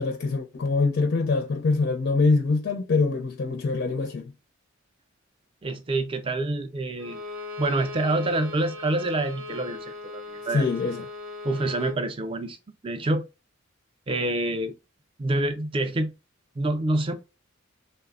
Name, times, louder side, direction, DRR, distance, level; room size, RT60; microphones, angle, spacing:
voice 1, 0.0-4.3 10.5-11.0, left 3 dB, 55° left, 0.4 m, -24 dB
voice 2, 5.6-7.2 7.6-10.7 11.4-12.6 12.8-13.3 14.1-14.7 15.2-16.1 16.6-17.1, right 2 dB, 25° right, 0.4 m, -27 dB
Bowed string instrument, 7.0-12.0, left 3 dB, 85° right, 0.8 m, -38 dB
3.2 x 2.1 x 2.3 m
head